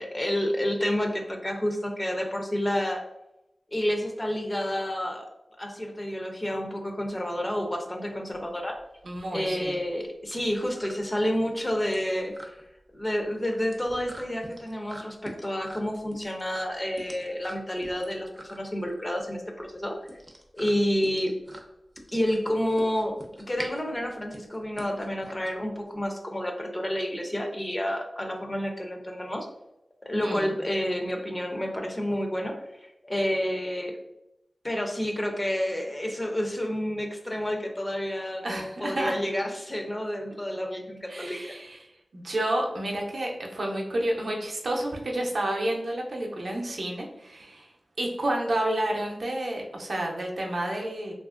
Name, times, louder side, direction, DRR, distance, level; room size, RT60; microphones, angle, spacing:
voice 1, 0.0-3.0 3.7-5.3 5.6-8.7 9.3-12.6 12.9-19.9 20.5-21.4 22.1-29.5 30.0-34.0 34.6-41.5, equal, 25° left, 2 dB, 0.5 m, -29 dB
sound 1, 8.3-26.1, right 1 dB, 25° right, 0.5 m, -46 dB
voice 2, 9.0-9.7 30.2-30.5 38.4-39.1 41.1-41.9 42.1-47.7 48.0-51.1, right 1 dB, 70° right, -1 dB, 0.5 m, -30 dB
2.8 x 2.4 x 2.4 m, 0.87 s
wide cardioid pair, 65°, 0 cm